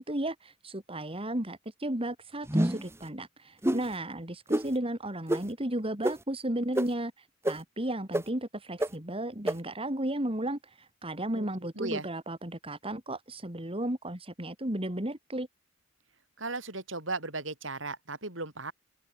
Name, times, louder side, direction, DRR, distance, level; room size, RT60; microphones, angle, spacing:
voice 1, 0.0-15.5, right 1 dB, 30° right, 3.5 m, -34 dB
sound 1, 2.5-2.9 3.6-3.8 4.5-4.6 5.3-5.4 6.0-6.1 6.7-6.8 7.4-7.5 8.1-8.2 8.8-8.9 9.5-9.6, right 1 dB, 15° right, 1.4 m, -26 dB
voice 2, 11.8-12.1 16.4-18.7, right 3 dB, 75° right, 7.4 m, -36 dB
open air
head